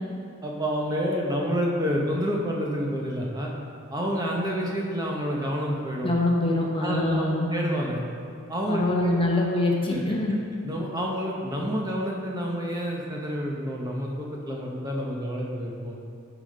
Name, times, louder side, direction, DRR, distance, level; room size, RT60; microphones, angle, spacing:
voice 1, 0.4-3.5 3.9-6.1 6.8-8.0 8.5-9.2 9.9-10.1 10.6-16.0, equal, 15° right, -2 dB, 0.8 m, -29 dB
voice 2, 6.0-7.5 8.7-10.4, left 2 dB, 25° left, -1 dB, 0.9 m, -24 dB
9.6 x 5.0 x 5.4 m, 2.5 s
head